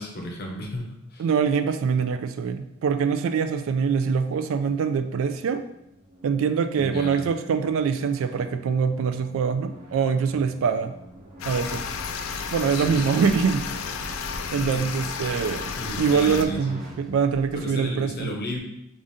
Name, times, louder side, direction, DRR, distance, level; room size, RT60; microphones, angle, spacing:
voice 1, 0.0-1.3 6.8-7.3 12.2-12.4 12.7-13.2 14.2-14.9 15.8-16.8 17.5-18.6, left 1 dB, 50° left, 0 dB, 0.6 m, -34 dB
voice 2, 1.2-5.6 6.2-10.9 11.5-11.8 12.5-13.8 14.5-15.7 16.0-18.3, right 6 dB, 70° right, 9 dB, 0.3 m, -24 dB
sound 1, 4.3-16.9, right 1 dB, 45° right, 0.9 m, -46 dB
sound 2, 11.4-16.4, left 6 dB, 85° left, 0.3 m, -32 dB
sound 3, 11.6-17.7, right 1 dB, ahead, 0.4 m, -44 dB
4.8 x 2.5 x 2.6 m, 0.83 s
head